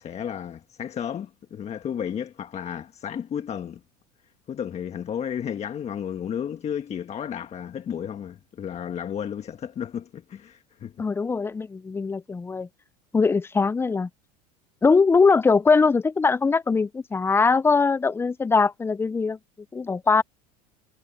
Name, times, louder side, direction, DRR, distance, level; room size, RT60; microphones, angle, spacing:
voice 1, 0.0-3.8 4.5-10.9, left 8 dB, 30° left, 1.4 m, -33 dB
voice 2, 11.0-12.7 13.1-14.1 14.8-19.4 19.7-20.2, left 4 dB, 10° left, 0.5 m, -21 dB
supercardioid pair, 110°, 21 cm